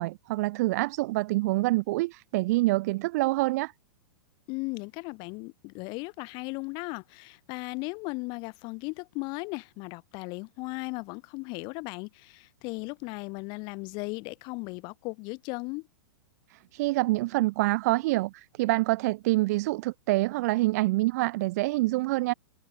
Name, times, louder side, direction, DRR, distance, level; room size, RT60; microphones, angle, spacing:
voice 1, 0.0-3.7 16.5-22.3, right 20 dB, 50° right, 1.4 m, -26 dB
voice 2, 4.5-15.9, left 29 dB, 40° left, 7.5 m, -37 dB
figure-of-eight pair, 105°, 12 cm